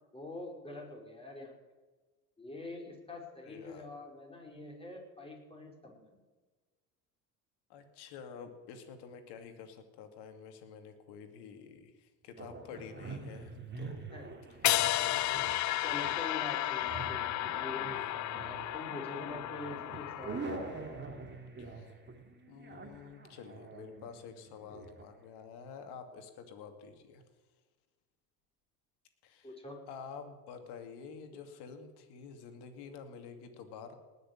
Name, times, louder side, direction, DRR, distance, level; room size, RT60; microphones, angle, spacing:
voice 1, 0.1-1.5 2.4-6.2 14.1-14.4 15.8-20.4 29.4-29.8, left 2 dB, 15° left, 0 dB, 5.2 m, -45 dB
voice 2, 3.2-3.9 7.7-14.0 21.6-21.9 22.5-27.2 29.2-29.5 29.9-34.0, left 6 dB, 65° left, 7 dB, 2.5 m, -49 dB
sound 1, 12.4-25.0, right 3 dB, 25° right, 2.9 m, -46 dB
sound 2, 14.6-20.8, left 14 dB, 40° left, 0.6 m, -33 dB
19.0 x 6.7 x 9.2 m, 1.3 s
hypercardioid pair, 70°, 43 cm